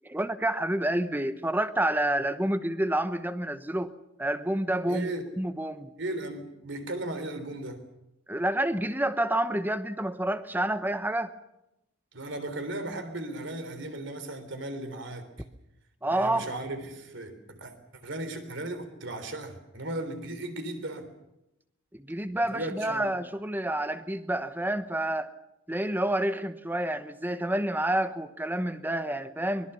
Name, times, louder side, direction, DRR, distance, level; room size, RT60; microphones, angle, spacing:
voice 1, 0.0-3.9 4.2-5.1 5.4-5.9 8.3-11.3 16.0-16.5 21.9-25.3 25.7-29.7, right 1 dB, 10° right, 12 dB, 1.0 m, -28 dB
voice 2, 4.8-5.2 6.0-7.8 12.1-15.3 16.1-17.7 18.0-21.1 22.5-23.1, right 1 dB, 60° right, 8 dB, 3.5 m, -36 dB
24.0 x 21.5 x 7.0 m, 0.87 s
head